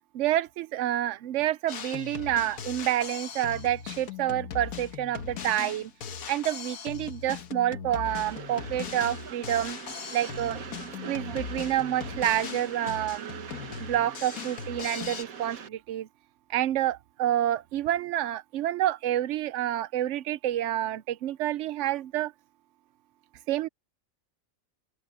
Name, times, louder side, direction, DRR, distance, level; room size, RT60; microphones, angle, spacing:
voice 1, 0.1-5.9 6.3-9.8 10.1-10.6 11.1-13.5 13.8-16.1 16.5-22.3 23.5-23.7, right 12 dB, 70° right, 0.8 m, -28 dB
Drum kit, 1.7-15.2, left 7 dB, 85° left, 1.6 m, -39 dB
Train, 8.0-15.7, right 6 dB, 85° right, 1.7 m, -42 dB
open air
omnidirectional pair, 1.4 m